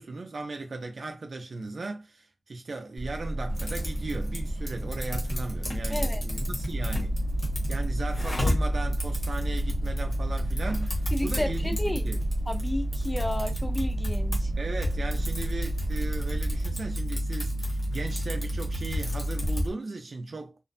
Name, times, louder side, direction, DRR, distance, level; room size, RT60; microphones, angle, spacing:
voice 1, 0.0-7.2 7.7-12.2 14.6-20.6, right 3 dB, 90° right, 0.5 m, -37 dB
sound 1, 3.0-16.7, right 1 dB, 75° left, 1.0 m, -34 dB
Typing, 3.5-19.7, left 1 dB, 55° left, 1.1 m, -34 dB
voice 2, 5.9-6.2 11.1-12.0 12.5-14.5, left 1 dB, 15° left, 0.5 m, -32 dB
sound 2, 6.7-19.6, right 1 dB, 40° right, 0.5 m, -31 dB
2.5 x 2.1 x 2.5 m
wide cardioid pair, 85°, 0 cm